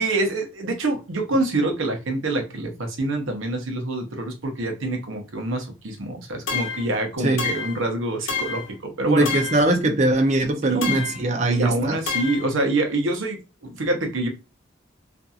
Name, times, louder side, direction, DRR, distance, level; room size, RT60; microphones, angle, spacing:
voice 1, 0.0-9.3 10.6-11.0 11.4-14.3, right 2 dB, 85° right, 0.7 m, -26 dB
sound 1, 6.5-6.9 7.4-7.8 8.3-8.7 9.2-9.7 10.8-11.3 12.1-12.5, left 5 dB, 80° left, 0.7 m, -28 dB
voice 2, 7.2-7.5 9.1-12.0, right 2 dB, 35° right, 0.5 m, -21 dB
2.7 x 2.5 x 2.3 m
head